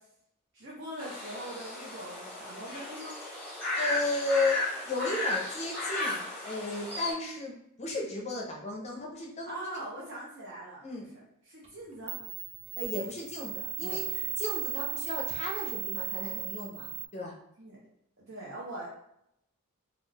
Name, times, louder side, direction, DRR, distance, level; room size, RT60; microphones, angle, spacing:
voice 1, 0.5-3.2 9.5-10.8 11.1-12.2 13.8-14.2 16.3-16.4 17.6-17.8 18.2-18.9, right 1 dB, 55° right, -6 dB, 0.7 m, -42 dB
sound 1, 1.0-7.1, left 2 dB, 5° left, 0.9 m, -35 dB
voice 2, 3.8-9.8 10.8-11.1 12.8-14.0 14.4-17.3, left 2 dB, 30° left, 0 dB, 0.5 m, -34 dB
sound 2, 11.6-11.7 12.1-17.1, right 10 dB, 30° right, 0.3 m, -36 dB
2.4 x 2.3 x 3.2 m, 0.77 s
head